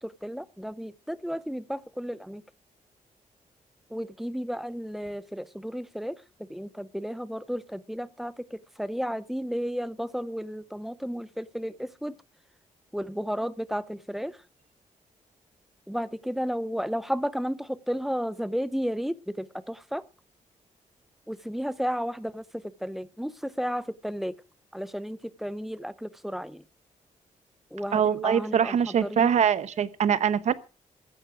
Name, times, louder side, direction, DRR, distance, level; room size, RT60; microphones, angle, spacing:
voice 1, 0.0-2.4 3.9-6.2 6.5-12.1 12.9-14.4 15.9-20.0 21.3-24.4 24.7-26.6 27.7-28.8 29.0-29.3, equal, ahead, 0.6 m, -33 dB
voice 2, 27.9-30.5, right 8 dB, 60° right, 0.9 m, -23 dB
15.0 x 9.7 x 6.1 m
wide cardioid pair, 170°, 13 cm